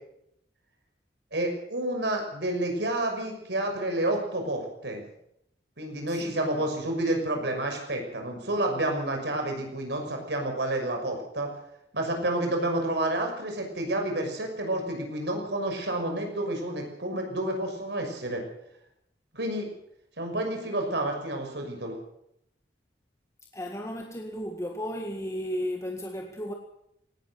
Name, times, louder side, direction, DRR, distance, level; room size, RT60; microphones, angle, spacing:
voice 1, 1.3-5.0 5.8-11.5 11.9-18.4 19.3-19.7 20.2-22.0, right 1 dB, 70° right, 6.1 m, -29 dB
voice 2, 23.5-26.5, equal, 15° left, 1.8 m, -34 dB
18.5 x 17.5 x 7.9 m
head